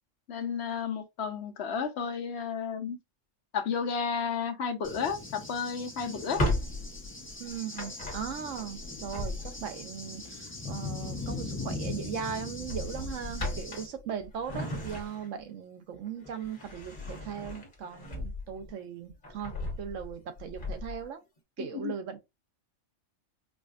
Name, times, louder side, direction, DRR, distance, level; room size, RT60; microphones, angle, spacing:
voice 1, 0.3-3.0 3.5-6.4 21.7-21.9, left 6 dB, 65° left, 0.9 m, -32 dB
Cricket / Thunder, 4.8-13.9, left 3 dB, 15° left, 0.6 m, -40 dB
Drawer open or close, 6.1-9.8 11.3-11.6 11.9-12.1 12.6-15.5 15.9-18.7 19.1-21.0, left 1 dB, 45° left, 1.3 m, -36 dB
voice 2, 7.4-21.2 21.6-22.2, right 7 dB, 80° right, 1.1 m, -38 dB
4.8 x 2.3 x 2.4 m
omnidirectional pair, 1.3 m